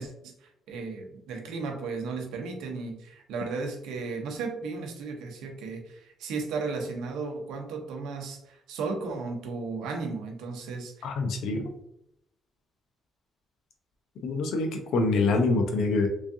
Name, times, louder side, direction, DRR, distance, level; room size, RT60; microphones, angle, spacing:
voice 1, 0.0-11.1, right 4 dB, 90° right, 4 dB, 0.7 m, -35 dB
voice 2, 11.0-11.7 14.2-16.1, left 3 dB, 80° left, 5 dB, 0.6 m, -25 dB
3.5 x 3.1 x 2.6 m, 0.78 s
cardioid pair, 90°, 0 cm